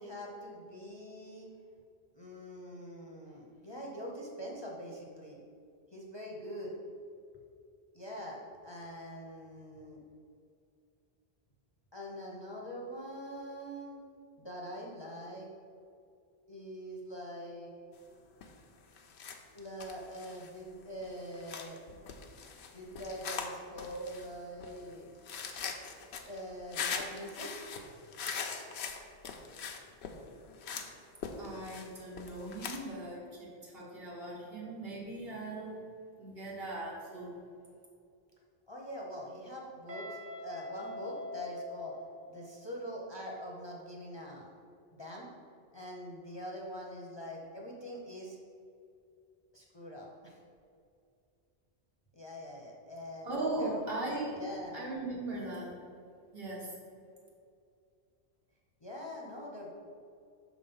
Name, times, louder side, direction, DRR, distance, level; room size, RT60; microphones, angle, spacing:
voice 1, 0.0-1.5 2.1-5.4 5.9-6.7 7.9-10.0 11.9-14.0 14.4-15.5 16.5-17.7 19.5-21.8 22.7-25.1 26.2-27.5 38.7-42.0 42.3-44.5 44.9-45.3 45.7-48.4 49.5-50.4 52.1-53.3 53.6-53.8 54.3-54.8 58.8-59.7, equal, 30° left, -3 dB, 0.7 m, -43 dB
sound 1, 18.4-18.6 19.0-32.9, left 6 dB, 85° left, 0.9 m, -42 dB
voice 2, 31.4-35.8 36.2-37.3 53.2-54.4 54.7-55.7 56.3-56.7, right 2 dB, 65° right, -5 dB, 1.8 m, -38 dB
Guitar, 39.9-42.7, left 2 dB, 45° right, 1.4 m, -44 dB
6.2 x 3.7 x 5.4 m, 2.4 s
omnidirectional pair, 1.1 m